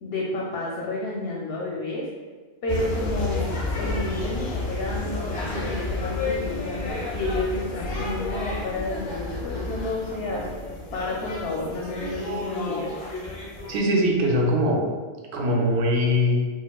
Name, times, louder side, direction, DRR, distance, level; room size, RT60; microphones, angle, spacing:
voice 1, 0.0-2.1 2.6-10.5 10.9-13.0, left 2 dB, 75° left, -3 dB, 0.8 m, -30 dB
sound 1, 2.7-13.8, left 2 dB, 45° left, 0.8 m, -31 dB
voice 2, 13.7-14.9 15.3-16.4, equal, 90° right, 0 dB, 0.9 m, -21 dB
4.2 x 2.3 x 2.3 m, 1.4 s
omnidirectional pair, 1.1 m